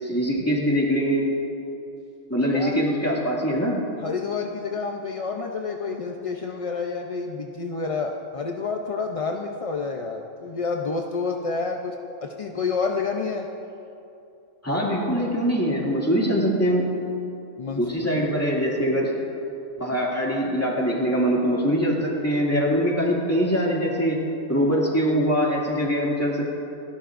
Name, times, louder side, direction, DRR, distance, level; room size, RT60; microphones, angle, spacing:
voice 1, 0.0-1.3 2.3-3.8 14.6-16.9 17.8-19.1 19.8-24.2 24.5-26.5, equal, 10° left, -4 dB, 2.3 m, -23 dB
voice 2, 4.0-11.9 12.2-13.5 17.6-17.8, left 4 dB, 40° left, 1 dB, 0.5 m, -29 dB
29.0 x 11.5 x 2.6 m, 2.7 s
omnidirectional pair, 1.4 m